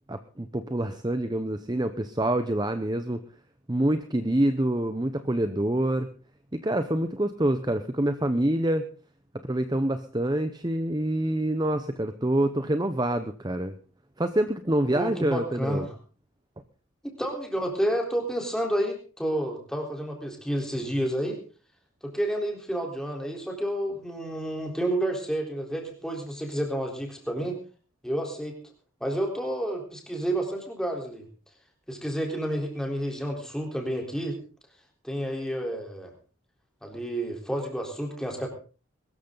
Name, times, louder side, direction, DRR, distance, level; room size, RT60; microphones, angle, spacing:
voice 1, 0.1-3.2 3.7-6.1 6.5-8.9 9.4-13.7 14.2-15.9, right 1 dB, 20° right, 9 dB, 0.8 m, -26 dB
voice 2, 14.9-15.9 17.0-21.4 22.0-27.6 28.0-28.6 29.0-31.3 31.9-34.4 35.0-36.1 36.8-38.5, right 1 dB, 5° left, 1 dB, 3.9 m, -30 dB
22.0 x 13.5 x 3.9 m, 0.37 s
head